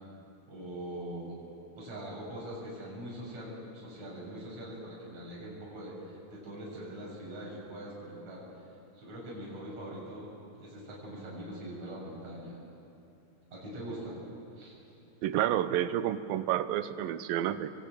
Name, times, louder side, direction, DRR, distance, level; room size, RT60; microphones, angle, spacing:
voice 1, 0.5-1.4 1.8-8.4 8.9-10.3 10.6-12.6 13.5-14.2 14.6-14.7, right 1 dB, 45° right, -5 dB, 8.0 m, -42 dB
voice 2, 15.2-17.7, right 11 dB, 75° right, 12 dB, 2.5 m, -30 dB
28.0 x 23.0 x 9.2 m, 2.7 s
omnidirectional pair, 4.3 m